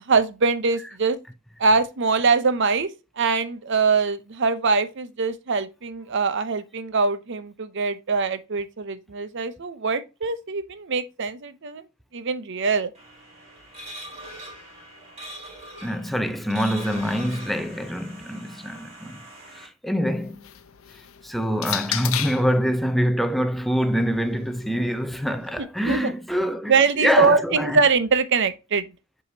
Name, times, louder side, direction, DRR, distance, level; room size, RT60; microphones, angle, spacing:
voice 1, 0.1-1.2 1.6-2.9 3.2-11.8 12.1-12.9 25.9-26.1 26.7-28.8, right 4 dB, 60° right, 0.7 m, -23 dB
sound 1, 12.9-19.7, right 1 dB, 30° right, 3.7 m, -42 dB
voice 2, 15.8-19.2 19.6-20.4 21.2-26.7 27.0-27.8, equal, ahead, 0.6 m, -25 dB
sound 2, 20.1-22.5 23.5-25.6, left 12 dB, 80° left, 0.7 m, -35 dB
7.9 x 4.9 x 2.7 m
head